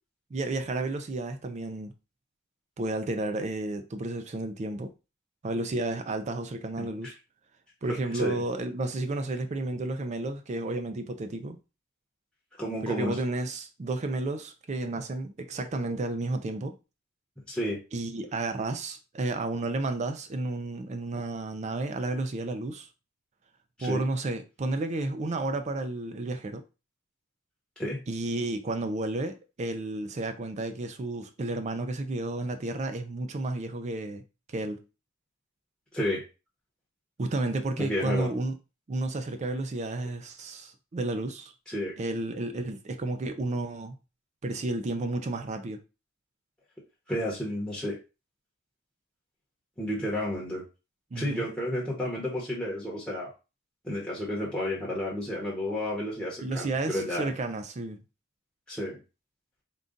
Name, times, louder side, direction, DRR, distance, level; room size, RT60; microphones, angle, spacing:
voice 1, 0.3-1.9 2.8-4.9 5.4-7.2 7.8-11.6 12.8-16.7 17.9-22.9 23.8-26.6 28.1-34.2 34.5-34.8 37.2-38.6 38.9-41.5 42.0-44.0 44.4-45.8 51.1-51.5 56.4-58.0, right 2 dB, 35° right, 0.4 m, -32 dB
voice 2, 6.8-7.1 7.9-8.4 12.6-13.2 17.5-17.8 23.8-24.1 27.8-28.0 35.9-36.2 37.8-38.3 41.7-42.0 47.1-48.0 49.8-50.6 51.1-53.3 53.8-57.3 58.7-59.0, left 1 dB, 5° left, 1.0 m, -31 dB
3.8 x 2.3 x 3.8 m
head